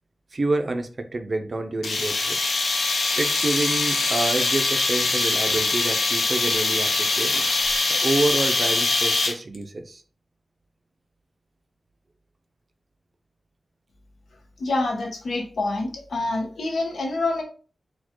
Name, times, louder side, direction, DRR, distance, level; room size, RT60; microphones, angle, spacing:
voice 1, 0.3-2.4 3.2-7.6 7.9-10.0, right 2 dB, 40° right, 7 dB, 0.6 m, -28 dB
sound 1, 1.8-9.6, left 3 dB, 65° left, 0.8 m, -23 dB
voice 2, 14.6-17.4, left 2 dB, 85° left, 0 dB, 1.2 m, -26 dB
4.3 x 2.3 x 4.4 m, 0.39 s
wide cardioid pair, 155°, 0 cm